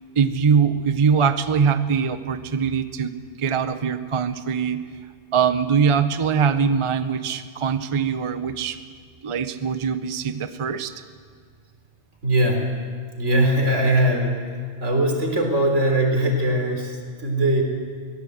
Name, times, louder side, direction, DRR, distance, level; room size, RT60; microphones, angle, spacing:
voice 1, 0.2-4.8 5.3-8.8 9.2-10.9, right 6 dB, 30° right, 11 dB, 0.7 m, -22 dB
voice 2, 12.2-12.7 13.2-14.4 14.8-17.6, right 1 dB, 85° right, 2 dB, 4.1 m, -21 dB
23.0 x 17.5 x 8.0 m, 2.1 s
omnidirectional pair, 1.2 m